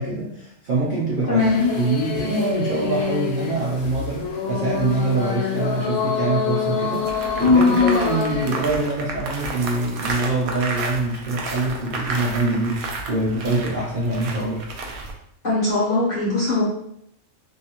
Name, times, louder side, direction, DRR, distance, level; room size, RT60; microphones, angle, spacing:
voice 1, 0.0-1.5 1.8-14.7, right 2 dB, 55° right, -5 dB, 0.5 m, -24 dB
voice 2, 1.3-1.6 15.4-16.6, left 2 dB, 40° left, -7 dB, 0.8 m, -20 dB
sound 1, 1.4-8.7, left 5 dB, 85° left, 1.1 m, -24 dB
sound 2, 7.0-15.1, right 3 dB, 80° right, 1.0 m, -32 dB
2.7 x 2.5 x 2.8 m, 0.74 s
omnidirectional pair, 1.5 m